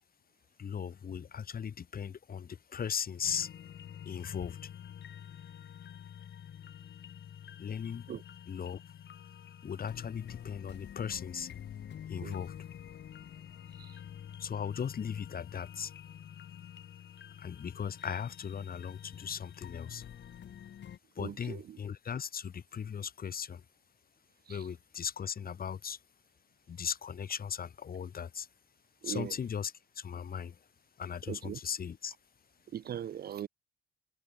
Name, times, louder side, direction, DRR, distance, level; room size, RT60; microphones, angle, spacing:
voice 1, 0.6-3.5 4.0-4.7 7.6-8.1 8.5-8.8 9.6-11.5 12.1-12.6 14.4-15.9 17.4-20.0 21.2-23.6 24.5-26.0 26.7-28.5 29.0-30.6 31.0-32.1, left 7 dB, 50° left, 2.3 m, -38 dB
sound 1, 3.2-21.0, left 9 dB, 65° left, 5.8 m, -48 dB
voice 2, 21.2-21.8 24.5-24.6 29.0-29.3 31.3-31.6 32.7-33.5, right 10 dB, 50° right, 0.6 m, -40 dB
cardioid pair, 90°, 20 cm